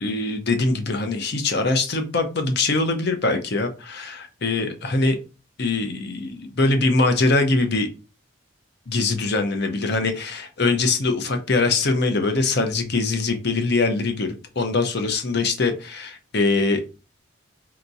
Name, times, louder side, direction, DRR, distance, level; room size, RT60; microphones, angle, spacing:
voice 1, 0.0-5.2 5.6-7.9 8.9-16.8, left 3 dB, 50° left, 6 dB, 0.7 m, -22 dB
4.5 x 2.8 x 2.6 m, 0.32 s
head